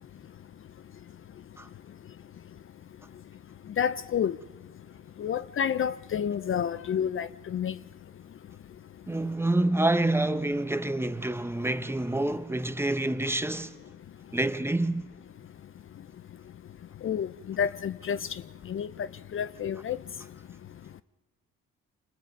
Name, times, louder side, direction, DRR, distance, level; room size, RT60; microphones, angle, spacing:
voice 1, 3.8-4.4 5.2-7.7 17.0-17.3 17.6-18.2 18.7-20.0, left 8 dB, 45° left, 0.5 m, -29 dB
voice 2, 9.1-13.8 14.3-15.1, right 1 dB, 10° right, 0.9 m, -27 dB
26.5 x 20.5 x 5.3 m
cardioid pair, 90°, 30 cm